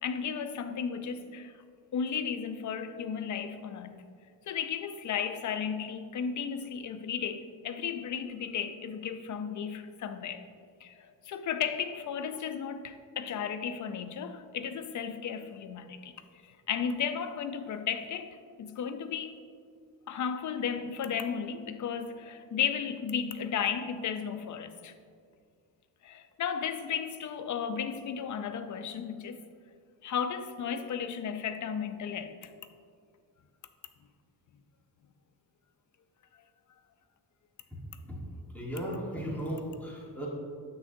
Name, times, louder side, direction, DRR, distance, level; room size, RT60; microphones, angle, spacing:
voice 1, 0.0-1.5 1.9-4.0 4.5-10.4 10.8-11.0 11.3-16.1 16.7-19.4 20.1-24.9 26.0-29.4 30.0-32.5, left 7 dB, 45° left, 9 dB, 0.5 m, -34 dB
voice 2, 38.5-40.3, equal, 5° left, -5 dB, 1.3 m, -36 dB
7.7 x 6.3 x 2.6 m, 2.1 s
cardioid pair, 115°, 42 cm